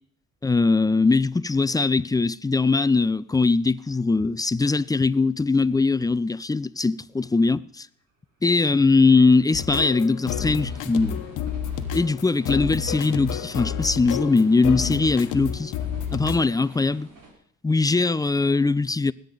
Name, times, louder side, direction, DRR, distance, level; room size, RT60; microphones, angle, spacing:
voice 1, 0.4-7.9 8.4-11.2 11.9-15.7 16.1-17.1 17.6-19.1, left 3 dB, 10° left, 0.4 m, -21 dB
sound 1, 8.0-17.3, right 2 dB, 90° right, 4.2 m, -50 dB
sound 2, 9.5-16.5, left 8 dB, 85° left, 1.1 m, -30 dB
20.0 x 9.3 x 4.0 m
cardioid pair, 90°, 30 cm